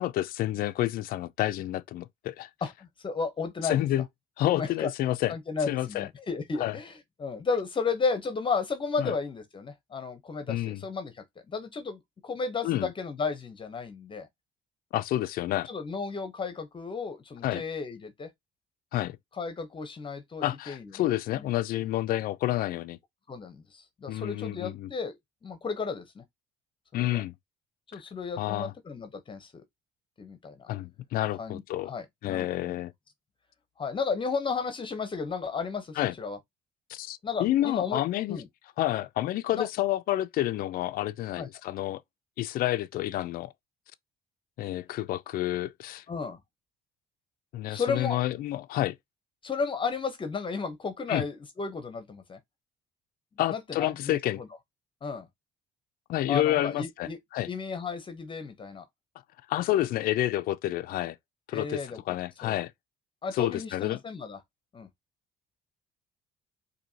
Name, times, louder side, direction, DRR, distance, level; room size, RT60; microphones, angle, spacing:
voice 1, 0.0-2.5 3.6-4.0 4.4-5.3 5.7-6.1 6.6-6.8 9.0-9.1 10.5-10.8 12.6-12.9 14.9-15.7 17.4-17.6 18.9-19.2 20.4-23.0 24.1-24.9 26.9-27.4 27.9-28.0 28.4-28.7 30.7-31.9 32.2-32.9 36.0-36.1 36.9-38.4 38.8-42.0 42.4-43.5 44.6-46.0 47.5-49.0 51.1-51.2 53.4-54.4 56.1-57.5 59.5-61.2 61.5-61.8 62.1-62.7 63.3-64.0, left 14 dB, 60° left, 0.4 m, -29 dB
voice 2, 2.6-3.8 4.5-4.9 5.3-14.3 15.7-18.3 19.4-21.5 23.3-25.2 25.4-26.2 26.9-27.2 27.9-29.5 30.2-30.7 31.4-32.8 33.8-36.4 37.2-38.0 38.3-38.5 39.5-39.7 41.4-41.5 46.1-46.4 47.7-48.2 49.4-52.4 53.5-54.5 55.0-55.3 56.3-57.2 57.5-58.8 61.5-62.0 62.4-62.6 63.2-64.4 64.7-64.9, left 5 dB, 30° left, 0.7 m, -33 dB
4.4 x 2.7 x 2.7 m
cardioid pair, 110°, 17 cm